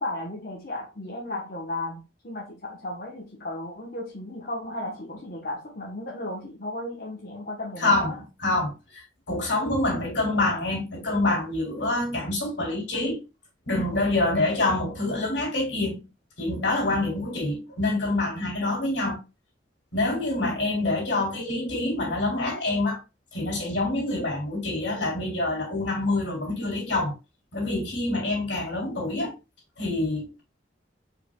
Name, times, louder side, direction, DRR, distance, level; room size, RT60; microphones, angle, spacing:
voice 1, 0.0-8.2, left 1 dB, 50° left, 1.1 m, -35 dB
voice 2, 7.8-9.0 9.3-13.2 13.6-16.0 16.4-19.2 19.9-23.0 23.3-27.1 27.5-29.3 29.8-30.4, left 2 dB, 75° left, 3.0 m, -26 dB
4.9 x 4.8 x 2.3 m
head